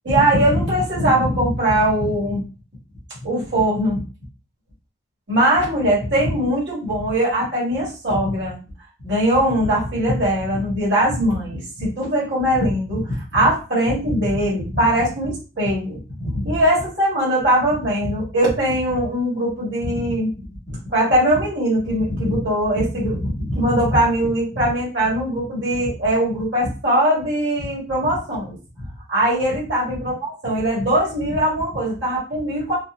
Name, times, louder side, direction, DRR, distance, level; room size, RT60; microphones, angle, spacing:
voice 1, 0.0-2.4 3.2-4.0 5.3-8.6 9.0-20.3 20.7-28.6 29.1-32.8, right 1 dB, 60° right, -6 dB, 1.5 m, -21 dB
4.0 x 2.1 x 2.4 m, 0.33 s
head